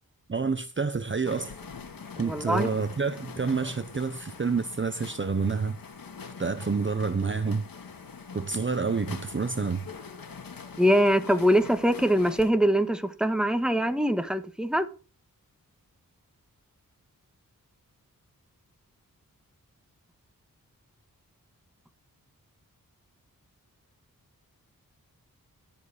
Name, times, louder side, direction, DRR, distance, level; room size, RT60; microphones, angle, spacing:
voice 1, 0.3-1.5 2.2-5.8 6.4-7.7 8.3-9.8, right 4 dB, 35° right, 0.8 m, -28 dB
sound 1, 1.3-12.5, left 5 dB, 75° left, 1.9 m, -43 dB
voice 2, 2.2-2.7 10.8-14.9, equal, ahead, 1.4 m, -23 dB
12.0 x 7.3 x 5.0 m
wide cardioid pair, 75°, 35 cm